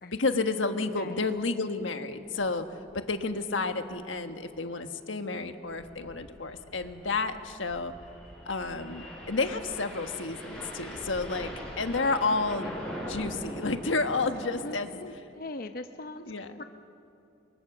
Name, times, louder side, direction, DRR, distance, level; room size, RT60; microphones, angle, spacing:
voice 1, 0.1-2.7 2.9-7.9 8.4-11.5 11.8-12.8 13.0-15.0 16.3-16.6, left 3 dB, 85° left, 7 dB, 1.4 m, -31 dB
sound 1, 2.4-2.6 2.8-2.9 3.3-3.4 3.9-4.1 5.5-14.8, equal, 5° left, 6.4 m, -42 dB
voice 2, 14.6-16.6, left 2 dB, 50° left, 7 dB, 0.8 m, -41 dB
28.5 x 24.0 x 7.3 m, 2.6 s
head